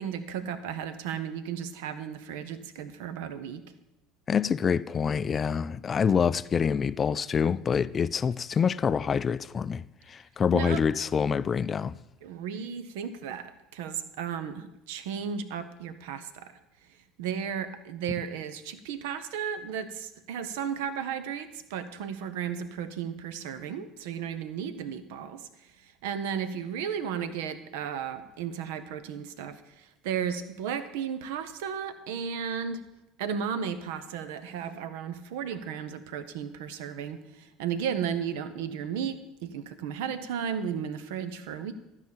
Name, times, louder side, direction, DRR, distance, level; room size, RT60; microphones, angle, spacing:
voice 1, 0.0-3.6 10.5-10.8 12.2-32.8 33.2-41.7, right 7 dB, 65° right, 0.7 m, -34 dB
voice 2, 4.3-12.0, left 6 dB, 30° left, 0.3 m, -26 dB
12.5 x 4.9 x 7.0 m
figure-of-eight pair, 65°, 0 cm